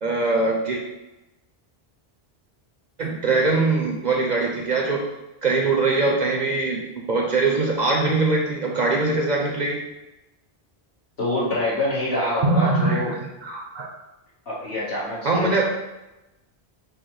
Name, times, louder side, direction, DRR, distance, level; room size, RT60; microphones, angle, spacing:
voice 1, 0.0-0.8 3.0-5.1 5.4-6.8 7.1-9.8 12.4-13.9 15.2-15.7, right 3 dB, 55° right, 0 dB, 0.6 m, -22 dB
voice 2, 11.2-13.1 14.5-15.5, left 1 dB, 65° left, -8 dB, 1.8 m, -25 dB
4.9 x 2.1 x 4.6 m, 0.99 s
omnidirectional pair, 1.1 m